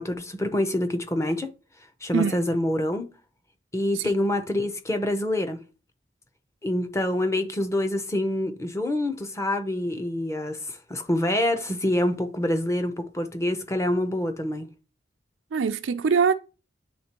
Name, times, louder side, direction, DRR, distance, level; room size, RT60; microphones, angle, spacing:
voice 1, 0.0-1.5 2.0-3.1 3.7-5.6 6.6-14.7, left 1 dB, 15° left, 0.6 m, -26 dB
voice 2, 2.1-2.5 3.9-4.1 15.5-16.3, right 6 dB, 75° right, 0.4 m, -23 dB
9.3 x 3.6 x 2.9 m
head